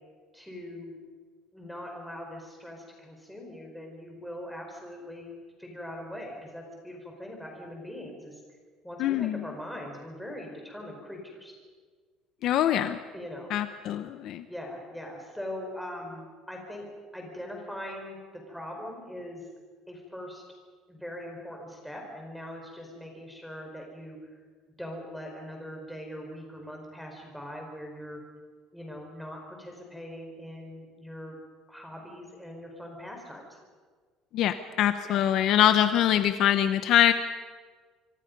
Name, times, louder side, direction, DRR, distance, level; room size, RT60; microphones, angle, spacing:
voice 1, 0.3-1.0 1.5-8.4 8.8-11.5 13.1-13.5 14.5-16.9 17.1-19.4 19.9-20.4 20.9-24.2 24.8-28.2 28.7-31.3 31.7-33.5 35.0-35.2, left 1 dB, ahead, 0 dB, 5.0 m, -41 dB
voice 2, 9.0-9.4 12.4-13.0 13.5-14.4 34.3-37.1, left 11 dB, 50° left, 9 dB, 0.9 m, -23 dB
26.5 x 24.0 x 5.4 m, 1.5 s
cardioid pair, 165°, 0 cm